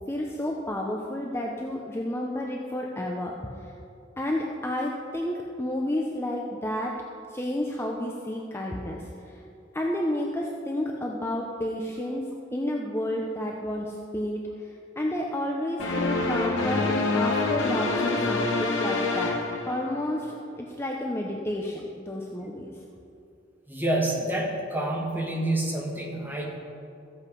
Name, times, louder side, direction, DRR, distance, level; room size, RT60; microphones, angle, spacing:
voice 1, 0.1-3.5 4.2-7.0 7.3-9.4 9.7-19.4 19.7-22.7, left 1 dB, 15° left, -1 dB, 0.8 m, -31 dB
sound 1, 15.8-20.3, left 3 dB, 85° left, 1.9 m, -26 dB
voice 2, 23.7-26.6, right 1 dB, 10° right, -2 dB, 1.9 m, -28 dB
14.0 x 8.3 x 5.4 m, 2.6 s
head